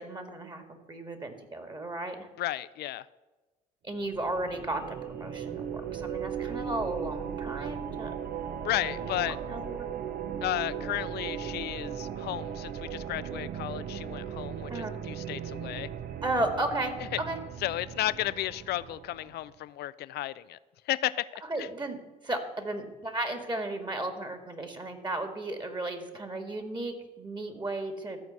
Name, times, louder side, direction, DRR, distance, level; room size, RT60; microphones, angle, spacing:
voice 1, 0.0-2.3 3.8-8.1 8.8-9.9 14.7-14.9 16.2-17.4 21.5-22.0 22.2-28.2, right 1 dB, 25° right, 6 dB, 1.9 m, -34 dB
voice 2, 2.4-3.1 8.6-9.4 10.4-15.9 17.6-20.6 20.9-21.7, left 15 dB, 65° left, 17 dB, 0.5 m, -33 dB
sound 1, 4.0-19.4, right 8 dB, 55° right, 0.9 m, -37 dB
13.5 x 4.6 x 8.0 m, 1.2 s
hypercardioid pair, 60°, 18 cm